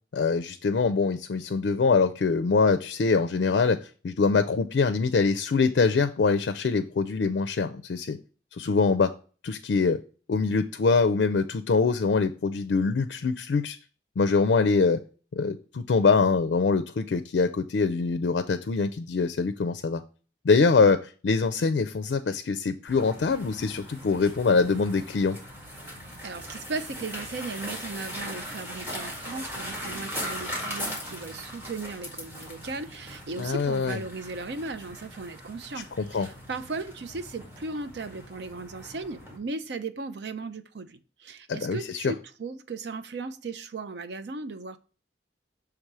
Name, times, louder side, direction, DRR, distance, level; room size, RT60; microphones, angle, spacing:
voice 1, 0.1-3.8 4.0-8.2 8.6-9.1 9.4-10.0 10.3-13.8 14.2-15.0 15.3-20.0 20.4-25.4 33.4-34.0 36.0-36.3 41.5-42.1, left 4 dB, 70° left, 9 dB, 0.4 m, -24 dB
sound 1, 22.9-39.4, equal, 10° right, 1.9 m, -39 dB
voice 2, 26.2-44.8, right 3 dB, 70° right, 10 dB, 0.5 m, -37 dB
6.7 x 3.5 x 4.7 m, 0.38 s
head